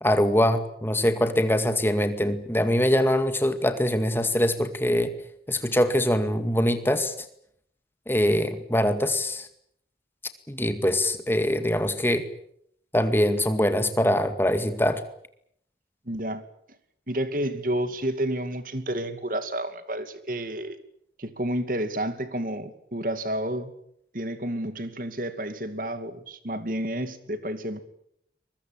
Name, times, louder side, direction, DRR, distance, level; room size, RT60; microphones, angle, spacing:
voice 1, 0.0-5.1 5.5-7.1 8.1-9.5 10.5-12.3 12.9-15.0, left 1 dB, 10° left, 2.1 m, -23 dB
voice 2, 16.1-16.4 17.1-20.8 21.2-23.7 24.1-27.8, right 1 dB, 50° right, 2.4 m, -30 dB
23.5 x 22.0 x 8.9 m
head